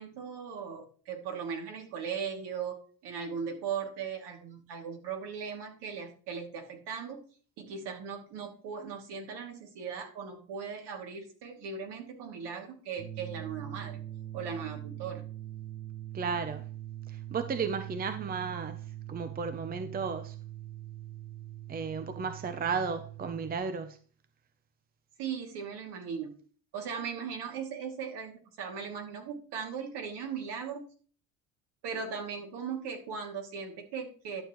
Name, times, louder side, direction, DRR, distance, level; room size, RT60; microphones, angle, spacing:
voice 1, 0.0-2.8 3.0-7.2 7.6-14.0 14.3-15.2 25.2-26.3 26.7-30.9 31.8-34.4, right 6 dB, 65° right, 2.6 m, -38 dB
sound 1, 13.0-23.6, right 13 dB, 90° right, 2.7 m, -42 dB
voice 2, 16.1-16.6 17.1-18.8 19.1-20.4 21.7-24.0, right 5 dB, 20° right, 0.7 m, -34 dB
11.5 x 6.9 x 3.1 m
cardioid pair, 115°, 44 cm